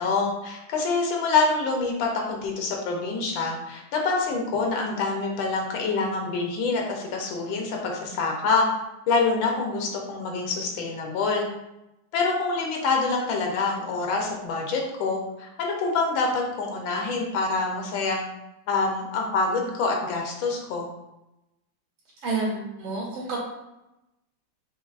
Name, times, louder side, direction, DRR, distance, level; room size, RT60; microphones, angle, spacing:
voice 1, 0.0-8.7 9.1-11.5 12.1-18.3 18.7-20.9, left 4 dB, 75° left, 0 dB, 1.4 m, -26 dB
voice 2, 22.2-23.4, right 3 dB, 85° right, -6 dB, 2.3 m, -29 dB
5.2 x 2.5 x 2.4 m, 0.93 s
omnidirectional pair, 2.2 m